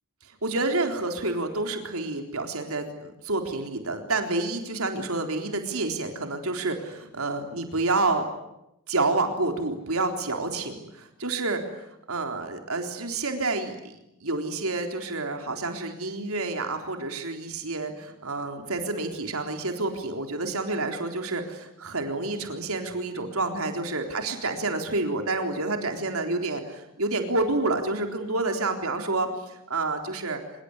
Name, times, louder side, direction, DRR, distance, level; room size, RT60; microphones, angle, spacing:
voice 1, 0.2-8.2 8.9-13.9 14.2-30.4, right 2 dB, 80° right, 5 dB, 3.8 m, -29 dB
25.5 x 23.0 x 9.7 m, 0.86 s
head